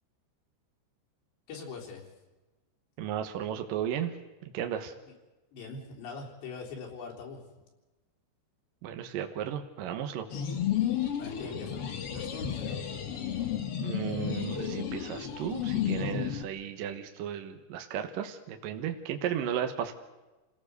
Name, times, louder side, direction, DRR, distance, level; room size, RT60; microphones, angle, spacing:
voice 1, 1.5-2.0 5.5-7.4 11.2-12.8, left 5 dB, 80° left, -1 dB, 5.8 m, -42 dB
voice 2, 3.0-4.1 4.5-4.9 8.8-10.3 13.8-19.9, right 9 dB, 65° right, 6 dB, 2.5 m, -34 dB
sound 1, 10.3-16.4, left 9 dB, 55° left, 1.7 m, -32 dB
28.5 x 17.0 x 6.7 m, 1.1 s
omnidirectional pair, 5.0 m